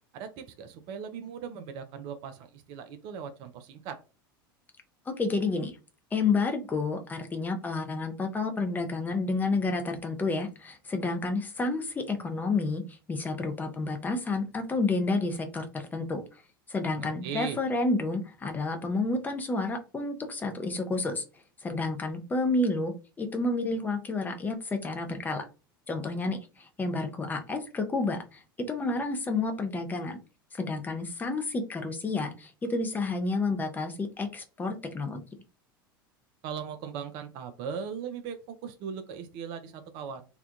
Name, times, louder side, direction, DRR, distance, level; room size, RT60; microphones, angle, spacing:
voice 1, 0.1-4.0 17.0-17.6 36.4-40.2, right 7 dB, 40° right, 8 dB, 0.4 m, -39 dB
voice 2, 5.1-5.8 6.1-16.2 16.7-21.2 21.6-25.4 25.9-28.4 28.7-30.2 30.5-35.2, left 3 dB, 15° left, 5 dB, 0.5 m, -30 dB
2.7 x 2.2 x 2.3 m, 0.32 s
figure-of-eight pair, 80°, 12 cm